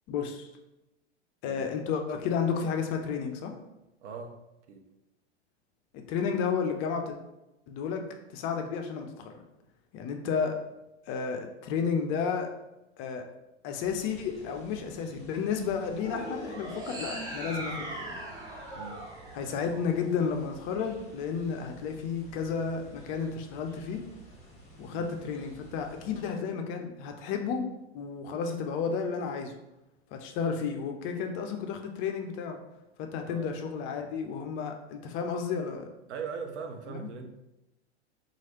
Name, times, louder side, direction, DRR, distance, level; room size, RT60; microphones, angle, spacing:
voice 1, 0.1-0.5 1.4-3.5 5.9-7.2 7.7-9.3 9.9-10.6 11.1-12.5 13.0-13.2 13.6-18.2 19.3-24.0 24.8-27.7 27.9-29.6 30.1-32.6 33.0-35.9 36.9-37.1, left 6 dB, 35° left, 4 dB, 0.4 m, -32 dB
voice 2, 4.0-4.4 4.7-4.9 18.7-19.0 24.9-25.2 33.2-33.5 36.1-37.3, right 5 dB, 80° right, 5 dB, 0.6 m, -40 dB
sound 1, 13.8-26.3, right 1 dB, 20° left, 1.1 m, -52 dB
sound 2, 15.9-20.3, right 1 dB, 10° right, 0.6 m, -40 dB
3.0 x 2.4 x 2.9 m, 0.94 s
hypercardioid pair, 95°, 34 cm